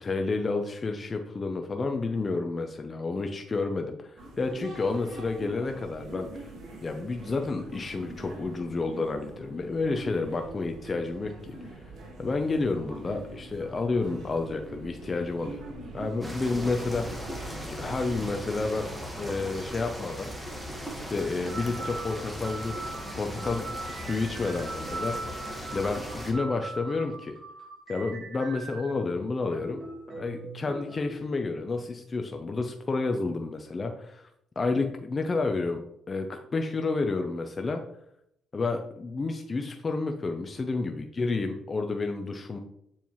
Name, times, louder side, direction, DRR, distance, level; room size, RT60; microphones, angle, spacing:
voice 1, 0.0-6.3 6.8-11.5 12.2-15.6 15.9-17.3 17.6-18.9 19.2-20.3 21.1-22.7 23.2-23.7 23.9-25.3 25.7-27.4 27.9-29.8 30.2-34.2 34.6-35.8 36.1-37.8 38.5-42.6, left 3 dB, 35° left, 5 dB, 0.6 m, -30 dB
sound 1, 4.2-18.3, right 2 dB, 75° right, 1.8 m, -44 dB
sound 2, 16.2-26.3, equal, 10° right, 1.3 m, -38 dB
sound 3, 20.8-20.9 21.5-29.0 29.5-31.2, right 2 dB, 40° right, 1.6 m, -40 dB
7.2 x 4.4 x 3.0 m, 0.74 s
cardioid pair, 90°, 0 cm